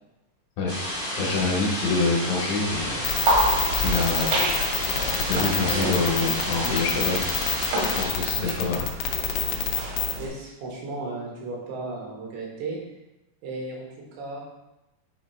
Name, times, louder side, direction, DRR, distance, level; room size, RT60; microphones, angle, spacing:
sound 1, 0.7-8.0, equal, 40° right, 0.7 m, -31 dB
voice 1, 1.2-4.3 5.2-7.2 8.0-8.9, left 3 dB, 70° left, -3 dB, 2.1 m, -26 dB
sound 2, 2.6-10.3, right 1 dB, 90° right, 4.1 m, -29 dB
sound 3, 3.0-10.2, left 9 dB, 90° left, 2.1 m, -27 dB
voice 2, 10.2-12.8 13.4-14.6, right 3 dB, 75° right, -3 dB, 3.8 m, -35 dB
9.7 x 5.1 x 3.1 m, 0.95 s
omnidirectional pair, 5.4 m